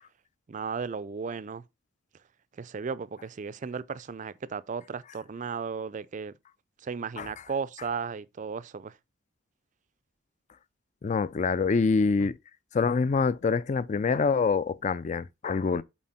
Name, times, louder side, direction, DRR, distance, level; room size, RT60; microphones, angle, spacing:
voice 1, 0.5-1.6 2.6-6.3 6.8-8.9, right 5 dB, 40° right, 0.4 m, -35 dB
voice 2, 11.0-12.3 12.7-15.8, left 4 dB, 35° left, 0.3 m, -25 dB
7.5 x 4.4 x 4.2 m
head